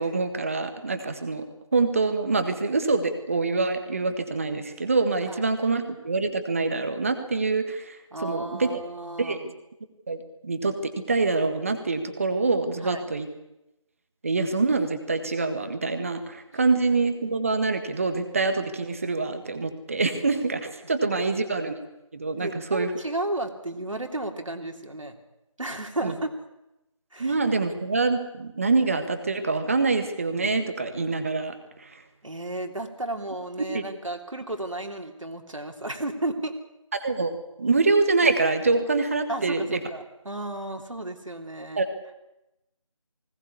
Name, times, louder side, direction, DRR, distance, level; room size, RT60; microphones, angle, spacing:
voice 1, 0.0-1.4 1.7-8.0 8.2-8.7 9.2-9.5 10.1-13.3 14.2-21.7 22.1-22.9 26.0-26.1 27.2-31.5 31.8-31.9 33.7-33.8 36.9-37.3 37.6-39.8 41.8-41.9, right 3 dB, 25° right, 8 dB, 1.7 m, -25 dB
voice 2, 8.1-9.5 12.8-13.0 16.5-16.6 21.2-21.4 22.4-25.2 25.6-26.3 27.1-27.4 32.2-36.6 39.3-41.8, right 1 dB, 70° right, 3 dB, 3.2 m, -33 dB
20.5 x 18.5 x 8.4 m, 0.90 s
figure-of-eight pair, 165°, 17 cm